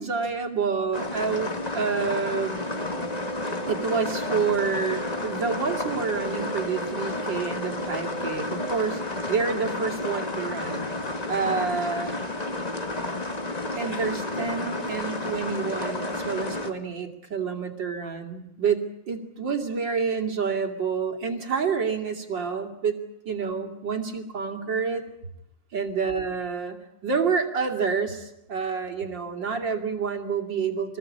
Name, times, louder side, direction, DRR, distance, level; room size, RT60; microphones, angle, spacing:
voice 1, 0.0-2.6 3.7-9.0 9.3-10.9 11.3-12.1 13.8-23.0 23.2-25.1 25.7-31.0, right 5 dB, 90° right, 4 dB, 3.4 m, -28 dB
sound 1, 0.9-16.7, left 2 dB, 25° left, 1.7 m, -31 dB
sound 2, 2.9-8.9, right 5 dB, 45° right, 2.7 m, -39 dB
25.5 x 20.0 x 8.6 m, 0.83 s
omnidirectional pair, 1.9 m